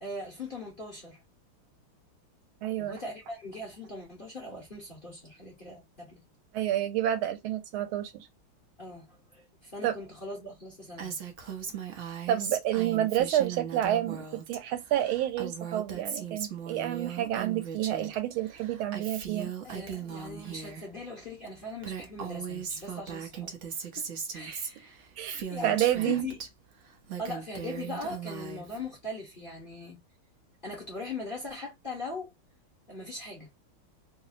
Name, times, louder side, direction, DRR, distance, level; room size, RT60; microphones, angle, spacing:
voice 1, 0.0-1.2 2.8-6.2 8.8-11.2 11.7-11.8 19.6-24.1 24.3-25.0 25.5-26.4 27.2-30.0 30.6-32.3 32.9-33.5, left 2 dB, 35° left, 0.9 m, -40 dB
voice 2, 2.6-3.0 6.5-8.3 9.8-10.0 12.3-19.5 24.5-24.6 25.2-26.3, right 12 dB, 85° right, 1.5 m, -29 dB
Female speech woman speaking, 11.0-14.6 14.8-18.2 18.4-20.8 21.5-21.6 21.8-26.5 26.9-28.8, right 7 dB, 60° right, 0.7 m, -38 dB
3.5 x 2.0 x 3.9 m
omnidirectional pair, 2.3 m